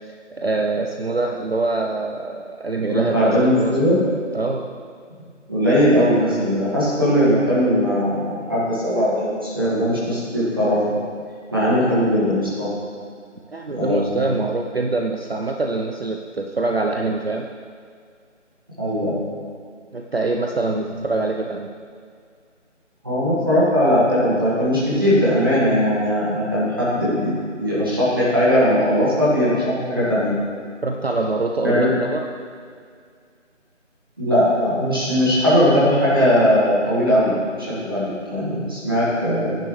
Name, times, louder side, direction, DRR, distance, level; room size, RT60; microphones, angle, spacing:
voice 1, 0.4-3.8 4.3-4.7 13.5-17.5 19.9-21.7 30.8-32.3, right 3 dB, 55° right, 2 dB, 0.7 m, -24 dB
voice 2, 2.9-4.0 5.5-10.8 11.5-12.7 13.8-14.4 18.8-19.2 20.7-20.9 23.0-27.3 27.6-30.4 31.6-31.9 34.2-39.6, equal, 20° right, -10 dB, 1.8 m, -19 dB
17.5 x 10.5 x 3.2 m, 2.1 s
figure-of-eight pair, 180°, 37 cm